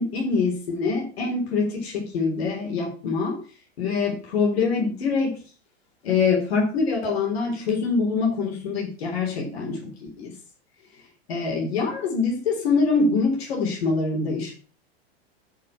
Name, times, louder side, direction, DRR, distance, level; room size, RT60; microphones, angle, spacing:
voice 1, 0.0-3.4 3.8-5.4 6.0-10.3 11.3-14.5, left 4 dB, 70° left, 0 dB, 3.4 m, -24 dB
7.2 x 6.7 x 7.0 m, 0.38 s
hypercardioid pair, 105°, 32 cm